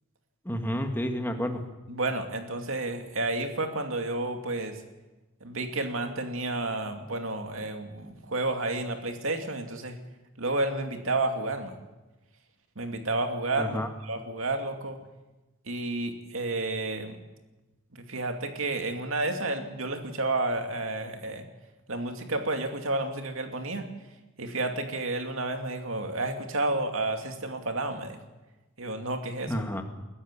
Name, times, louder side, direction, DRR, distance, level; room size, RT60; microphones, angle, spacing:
voice 1, 0.5-1.6 13.6-13.9 29.5-29.8, equal, 10° left, 4 dB, 1.9 m, -30 dB
voice 2, 1.9-4.8 5.4-10.0 10.4-11.8 12.8-15.0 15.7-17.2 17.9-21.4 21.9-23.9 24.4-28.2 28.8-29.6, right 2 dB, 70° right, 5 dB, 2.5 m, -31 dB
22.0 x 13.5 x 9.9 m, 1.1 s
head